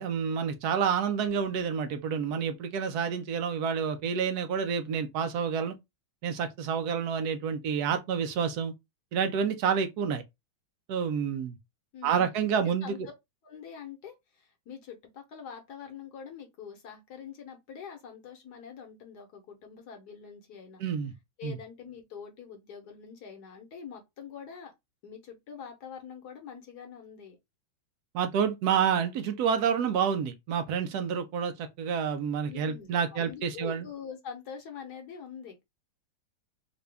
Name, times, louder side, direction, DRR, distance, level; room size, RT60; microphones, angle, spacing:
voice 1, 0.0-5.7 6.2-8.7 9.1-10.2 10.9-11.6 12.0-13.1 20.8-21.1 21.4-21.6 28.1-33.9, right 7 dB, 70° right, 0.9 m, -29 dB
voice 2, 11.9-13.0 13.4-20.8 21.4-24.7 25.0-27.4 32.4-35.6, left 7 dB, 60° left, 1.2 m, -45 dB
3.8 x 2.3 x 3.3 m
omnidirectional pair, 2.2 m